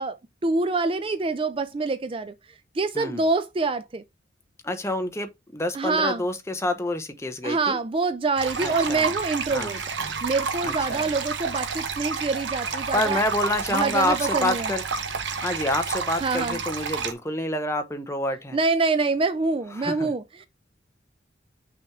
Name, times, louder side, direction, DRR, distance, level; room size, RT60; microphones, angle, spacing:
voice 1, 0.0-2.3 2.7-4.0 5.7-6.2 7.4-9.8 10.2-13.2 13.7-14.7 16.2-16.6 18.5-20.5, right 3 dB, 30° right, 0.4 m, -26 dB
voice 2, 4.6-7.8 8.6-9.1 9.5-9.7 10.6-11.1 12.9-14.8 15.4-18.6 19.8-20.1, left 1 dB, 15° left, 0.8 m, -28 dB
sound 1, 8.4-17.1, right 5 dB, 80° right, 1.0 m, -30 dB
6.0 x 4.4 x 3.6 m
head